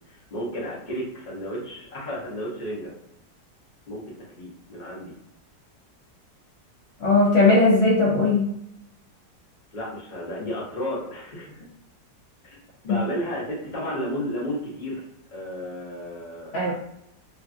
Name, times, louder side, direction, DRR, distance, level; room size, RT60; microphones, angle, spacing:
voice 1, 0.1-2.9 3.9-4.0 4.3-5.1 9.7-11.5 12.4-12.6 12.8-15.0 15.3-16.7, equal, 35° left, -5 dB, 0.7 m, -32 dB
voice 2, 7.0-8.5 12.9-13.1 16.5-16.7, left 3 dB, 80° left, -4 dB, 0.5 m, -19 dB
3.2 x 2.4 x 2.5 m, 0.78 s
omnidirectional pair, 1.9 m